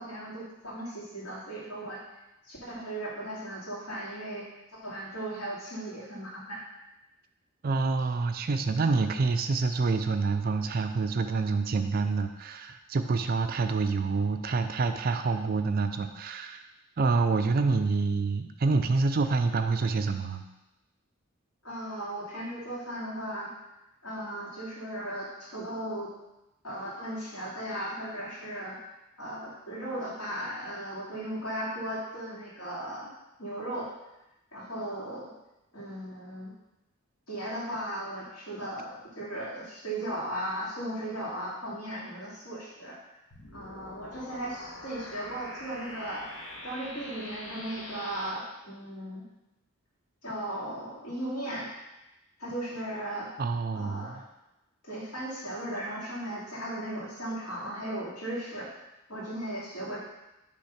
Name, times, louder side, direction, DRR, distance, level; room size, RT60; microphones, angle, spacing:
voice 1, 0.0-2.0 2.4-6.6 21.6-23.5 24.0-26.1 26.6-28.8 29.2-33.1 33.4-33.9 34.5-35.3 35.7-36.5 37.3-43.0 43.5-46.3 46.6-49.2 50.2-51.7 52.4-53.3 53.7-54.2 54.8-58.7 59.1-60.0, right 1 dB, 90° left, -7 dB, 2.5 m, -36 dB
voice 2, 7.6-16.6 17.0-20.4 53.4-54.2, right 4 dB, 45° right, 8 dB, 0.4 m, -27 dB
sound 1, 43.3-48.3, left 1 dB, 70° left, 1.2 m, -44 dB
6.2 x 3.5 x 5.7 m, 0.96 s
head